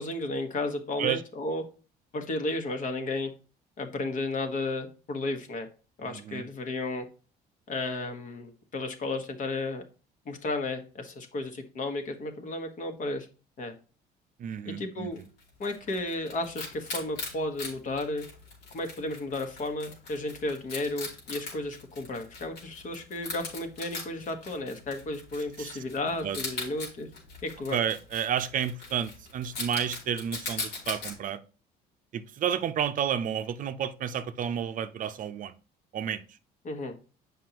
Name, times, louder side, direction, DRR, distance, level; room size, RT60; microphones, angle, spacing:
voice 1, 0.0-1.6 2.1-3.3 3.8-5.7 6.0-7.1 7.7-9.8 10.2-13.3 13.6-13.7 14.6-15.2 15.6-18.2 18.7-27.1 27.4-27.8 36.6-36.9, left 2 dB, 50° left, 1.3 m, -33 dB
voice 2, 6.0-6.4 14.4-15.1 25.6-25.8 26.2-26.4 27.7-31.4 32.1-35.5 35.9-36.2, right 8 dB, 50° right, 0.6 m, -31 dB
Wild animals, 15.2-31.1, left 3 dB, 85° left, 3.0 m, -41 dB
7.6 x 5.4 x 2.9 m
cardioid pair, 110°, 17 cm